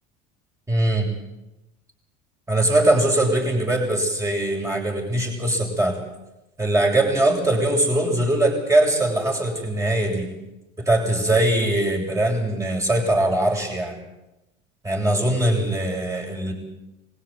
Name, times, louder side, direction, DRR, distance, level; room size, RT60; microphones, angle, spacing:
voice 1, 0.7-1.1 2.5-6.0 6.6-10.3 10.8-14.0 14.8-16.5, right 1 dB, 15° right, 1 dB, 7.8 m, -21 dB
21.5 x 16.5 x 9.1 m, 0.96 s
hypercardioid pair, 90°, 21 cm